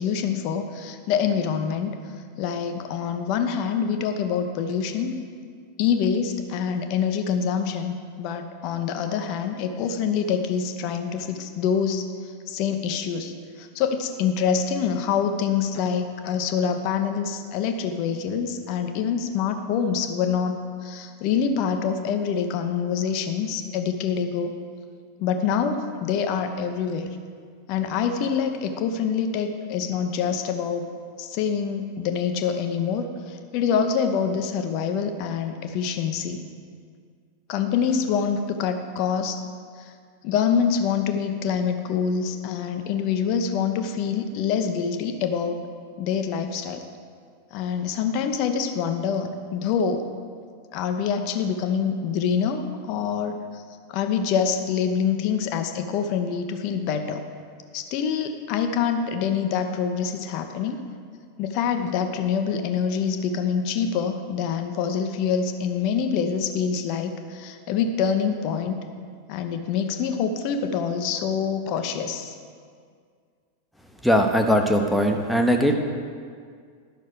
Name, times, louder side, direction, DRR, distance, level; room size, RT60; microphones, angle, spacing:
voice 1, 0.0-1.9 2.4-5.1 5.8-12.1 12.5-13.3 13.6-24.5 25.2-27.2 27.7-30.9 31.2-36.4 37.5-39.4 40.2-45.7 46.0-46.8 47.5-50.1 50.7-53.6 53.9-57.2 57.7-60.8 61.4-68.8 69.3-72.3, left 7 dB, 45° left, 6 dB, 0.9 m, -25 dB
voice 2, 74.0-75.7, equal, ahead, 3 dB, 1.1 m, -20 dB
11.0 x 6.3 x 6.8 m, 2.1 s
figure-of-eight pair, 90°, 0 cm